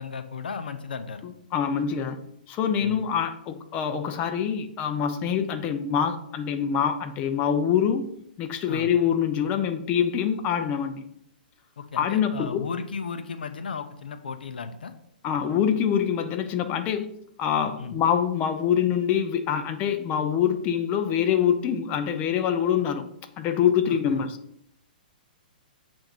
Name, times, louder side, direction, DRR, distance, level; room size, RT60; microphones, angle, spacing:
voice 1, 0.0-1.2 2.8-3.1 8.7-8.9 11.8-14.9 17.8-18.0 23.9-24.3, left 5 dB, 80° left, 9 dB, 0.5 m, -35 dB
voice 2, 1.2-2.2 2.5-8.0 8.4-11.0 12.0-12.6 15.2-17.1 17.4-23.0 23.4-24.4, left 8 dB, 30° left, 8 dB, 0.6 m, -25 dB
7.1 x 2.6 x 5.3 m, 0.75 s
hypercardioid pair, 130°, 5 cm